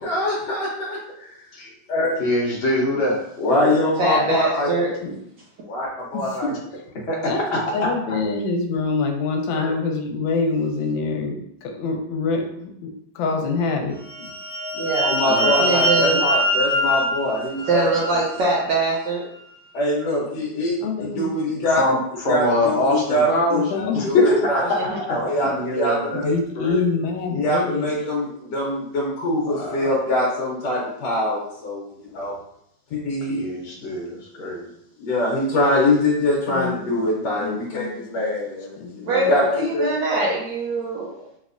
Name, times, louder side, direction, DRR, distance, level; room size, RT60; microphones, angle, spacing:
voice 1, 0.0-2.2 3.4-4.9 5.7-6.5 15.0-17.9 19.7-21.8 22.3-24.6 25.1-26.3 27.3-32.3 32.9-33.4 35.0-39.9, left 1 dB, 65° left, -5 dB, 1.2 m, -23 dB
voice 2, 2.2-3.2 7.1-7.6 9.5-9.7 15.3-15.5 16.8-17.0 21.7-23.6 23.9-24.0 25.1-25.2 25.4-26.2 26.5-26.8 29.5-30.0 33.3-34.7, left 1 dB, 45° left, -3 dB, 0.8 m, -24 dB
voice 3, 4.0-4.9 14.7-15.0 15.6-16.2 17.6-19.2 24.7-24.8 39.1-41.1, right 2 dB, 75° right, -5 dB, 1.3 m, -22 dB
voice 4, 6.1-6.5 7.3-7.4 7.7-14.3 20.8-21.3 23.5-24.4 26.2-27.9 32.1-32.4 36.2-38.3 38.8-39.3, left 4 dB, 85° left, 3 dB, 1.4 m, -25 dB
sound 1, 14.1-18.6, equal, 25° right, 1.4 m, -23 dB
3.5 x 3.1 x 2.5 m, 0.73 s
omnidirectional pair, 2.1 m